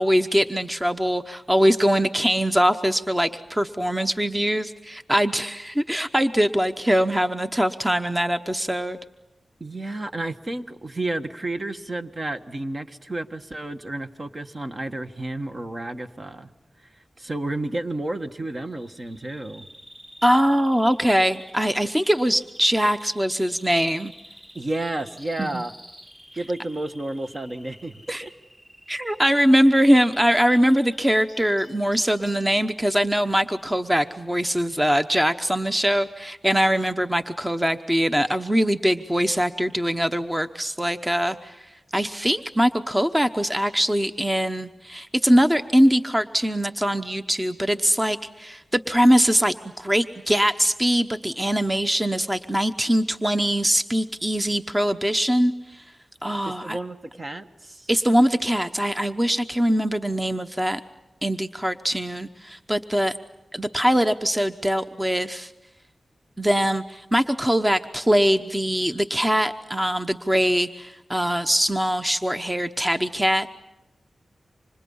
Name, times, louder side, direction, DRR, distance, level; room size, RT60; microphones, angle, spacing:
voice 1, 0.0-9.0 20.2-24.1 25.4-25.6 28.1-28.2 28.9-41.6 41.9-55.8 56.2-56.8 57.9-60.8 61.2-63.2 63.5-65.5 66.4-73.5, equal, 15° right, 8 dB, 1.0 m, -22 dB
voice 2, 9.6-16.5 16.8-19.7 24.5-25.7 26.4-28.3 56.6-57.9, right 2 dB, 45° right, 7 dB, 1.6 m, -31 dB
Bird vocalization bird call bird song, 18.6-32.6, equal, 30° right, 6.7 m, -49 dB
29.5 x 26.0 x 5.6 m, 1.0 s
cardioid pair, 50°, 0 cm